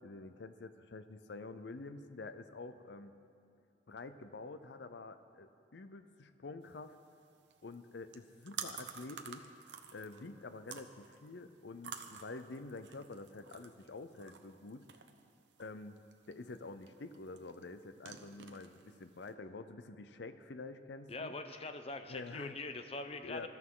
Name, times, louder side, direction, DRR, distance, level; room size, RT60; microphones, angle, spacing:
voice 1, 0.0-3.1 3.9-7.0 7.6-9.5 9.9-14.8 15.6-16.0 16.3-21.3 22.1-22.6 23.2-23.5, left 3 dB, 70° left, 10 dB, 0.6 m, -48 dB
sound 1, 6.6-19.3, right 7 dB, 75° right, 0.9 m, -51 dB
voice 2, 21.1-23.5, left 2 dB, 35° left, 7 dB, 0.8 m, -43 dB
21.5 x 13.5 x 3.8 m, 2.6 s
head